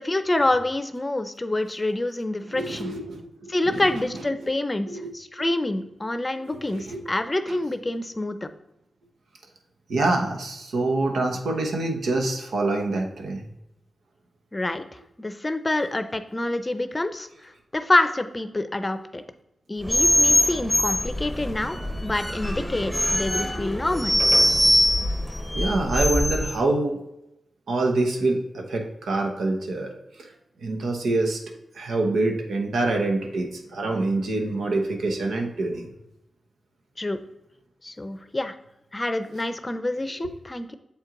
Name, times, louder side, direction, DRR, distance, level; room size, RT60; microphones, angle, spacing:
voice 1, 0.0-3.0 3.5-8.5 14.5-14.8 15.2-19.2 19.7-21.8 22.0-24.2 37.0-37.2 37.8-38.5 38.9-40.7, left 2 dB, 25° left, 11 dB, 0.6 m, -27 dB
voice 2, 2.4-3.9 4.1-4.2 4.8-5.1 5.4-5.5 6.4-7.0 9.9-13.5 25.5-27.0 27.7-30.3 30.6-31.4 31.7-35.9 40.2-40.3, right 2 dB, 85° right, 3 dB, 1.0 m, -26 dB
sound 1, 19.9-26.5, equal, 5° left, 0.9 m, -22 dB
7.0 x 4.5 x 3.8 m, 0.89 s
cardioid pair, 50°, 0 cm